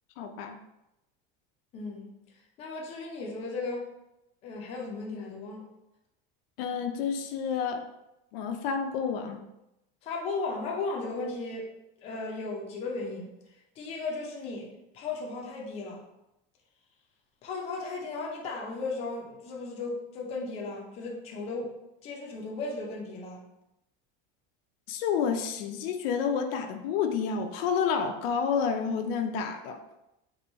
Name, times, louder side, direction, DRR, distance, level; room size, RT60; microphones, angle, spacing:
voice 1, 0.2-0.6 6.6-7.9 8.3-9.4 24.9-29.8, left 6 dB, 75° left, 7 dB, 0.5 m, -29 dB
voice 2, 1.7-2.1 2.6-3.9 4.4-5.7 10.0-11.7 12.0-14.7 14.9-16.0 17.4-21.7 22.0-23.5, left 3 dB, 20° left, -1 dB, 0.4 m, -36 dB
3.0 x 2.6 x 4.1 m, 0.89 s
cardioid pair, 180°, 29 cm